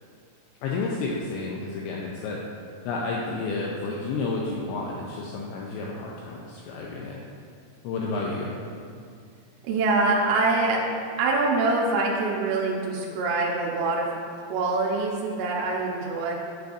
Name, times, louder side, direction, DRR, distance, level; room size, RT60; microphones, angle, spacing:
voice 1, 0.6-2.4 2.8-7.2 7.8-8.6 9.0-9.1, left 3 dB, 90° left, -3 dB, 2.5 m, -31 dB
voice 2, 9.6-10.8 11.2-14.1 14.3-16.3, right 3 dB, 85° right, -3 dB, 3.4 m, -24 dB
9.0 x 6.5 x 2.6 m, 2.2 s
omnidirectional pair, 5.6 m